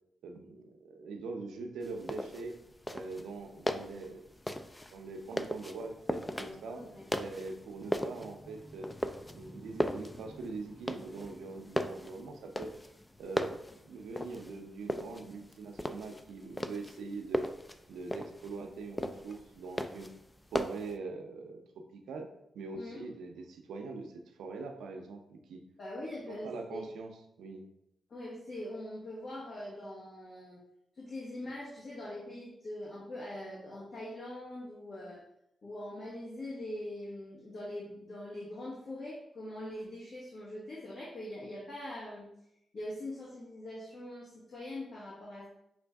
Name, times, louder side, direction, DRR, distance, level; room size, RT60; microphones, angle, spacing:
voice 1, 0.2-2.5 2.9-4.3 4.9-6.8 7.2-8.9 9.3-12.7 13.2-13.6 13.9-17.5 17.9-20.1 20.5-21.6 21.9-25.6 26.2-27.6, right 3 dB, 85° right, 4 dB, 0.6 m, -43 dB
sound 1, 1.8-21.0, left 1 dB, 15° left, 0.3 m, -38 dB
voice 2, 6.4-7.0 22.7-23.0 25.8-26.8 28.1-30.6 30.9-35.2 35.6-42.3 42.7-45.5, left 1 dB, 65° left, -7 dB, 1.4 m, -42 dB
6.0 x 2.5 x 3.4 m, 0.80 s
cardioid pair, 60°, 0 cm